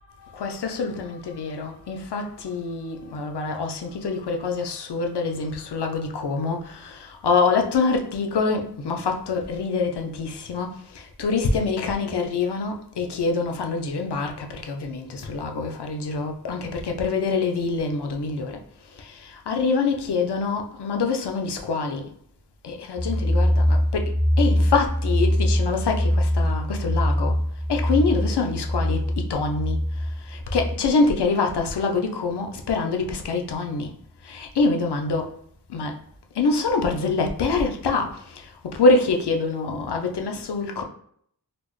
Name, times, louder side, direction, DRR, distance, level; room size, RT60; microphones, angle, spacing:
voice 1, 0.2-18.6 18.9-22.1 22.6-24.1 24.4-27.4 27.7-33.9 34.2-35.4 35.7-36.0 36.3-40.8, left 4 dB, 85° left, 0.6 m, -25 dB
sound 1, 23.0-30.7, equal, 15° left, 0.4 m, -23 dB
4.1 x 2.0 x 3.1 m
wide cardioid pair, 85°, 39 cm